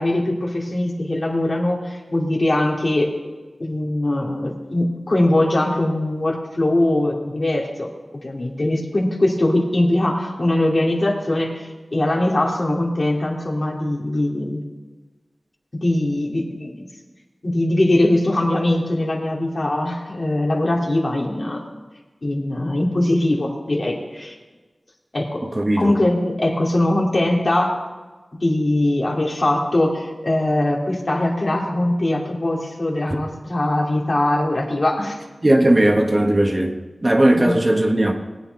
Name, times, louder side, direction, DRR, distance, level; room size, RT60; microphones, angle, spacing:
voice 1, 0.0-3.1 3.6-7.9 8.2-14.6 15.7-16.9 17.4-21.6 22.2-24.3 25.1-25.4 25.8-27.8 28.4-35.2 37.3-37.6, left 1 dB, 50° left, -2 dB, 2.7 m, -21 dB
voice 2, 25.5-25.9 35.4-36.7 37.0-38.1, right 1 dB, 35° right, 2 dB, 1.5 m, -17 dB
20.0 x 8.9 x 4.1 m, 1.3 s
wide cardioid pair, 50°, 0 cm